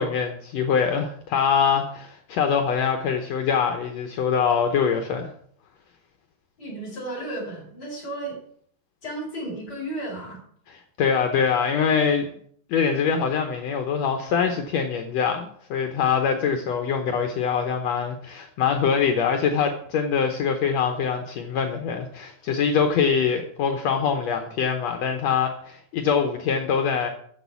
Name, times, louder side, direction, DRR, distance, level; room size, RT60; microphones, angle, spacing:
voice 1, 0.0-5.3 10.7-12.3 12.7-27.1, left 6 dB, 80° left, 5 dB, 1.5 m, -24 dB
voice 2, 6.6-8.4 9.0-10.4, right 1 dB, 25° left, -4 dB, 5.7 m, -33 dB
10.5 x 6.9 x 7.0 m, 0.62 s
omnidirectional pair, 4.3 m